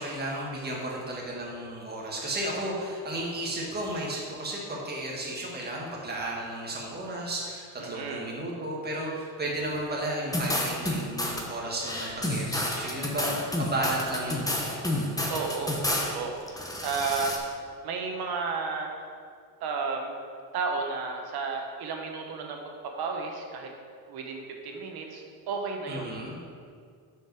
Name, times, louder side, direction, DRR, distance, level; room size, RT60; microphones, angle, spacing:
voice 1, 0.0-14.8 25.9-26.4, right 1 dB, 25° right, -3 dB, 1.8 m, -33 dB
voice 2, 7.8-8.3 15.3-17.4 17.8-19.1 19.6-20.1 20.5-23.7 24.1-26.1, right 4 dB, 70° right, 2 dB, 1.1 m, -33 dB
sound 1, 10.3-11.4 11.8-16.1 16.5-17.4, left 1 dB, 10° left, 1.0 m, -30 dB
6.2 x 5.2 x 6.1 m, 2.1 s
cardioid pair, 120°, 40 cm